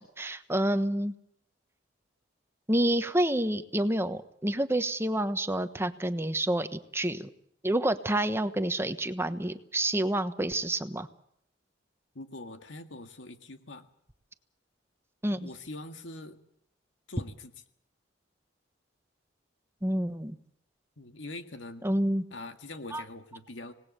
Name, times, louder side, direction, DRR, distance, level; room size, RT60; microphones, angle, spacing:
voice 1, 0.2-1.1 2.7-7.3 7.6-11.1 15.2-15.5 19.8-20.4 21.8-22.2 22.9-23.0, right 1 dB, 15° right, 10 dB, 1.2 m, -28 dB
voice 2, 12.2-13.9 15.4-16.4 17.1-17.5 21.0-21.8 22.3-23.7, left 2 dB, 80° left, 7 dB, 1.9 m, -43 dB
26.5 x 19.0 x 6.8 m, 0.73 s
head